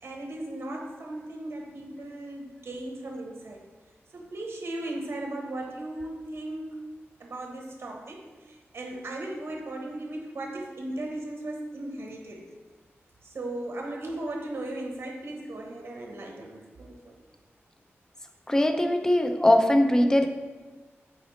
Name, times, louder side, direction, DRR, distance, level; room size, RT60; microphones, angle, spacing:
voice 1, 0.0-3.6 4.1-6.8 7.2-12.5 13.2-17.2, right 1 dB, 70° right, 0.9 m, -37 dB
voice 2, 18.5-20.3, left 1 dB, 15° left, 0.4 m, -21 dB
8.1 x 4.0 x 3.1 m
wide cardioid pair, 140°, 5 cm